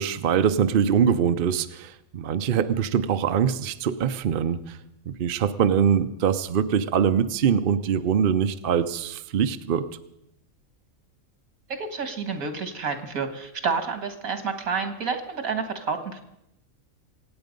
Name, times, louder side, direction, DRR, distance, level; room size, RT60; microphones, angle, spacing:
voice 1, 0.0-4.8 5.1-9.8, right 8 dB, 50° right, 10 dB, 0.7 m, -23 dB
voice 2, 11.8-16.2, right 5 dB, 85° right, 8 dB, 2.1 m, -29 dB
24.5 x 9.0 x 5.3 m, 0.82 s
omnidirectional pair, 1.4 m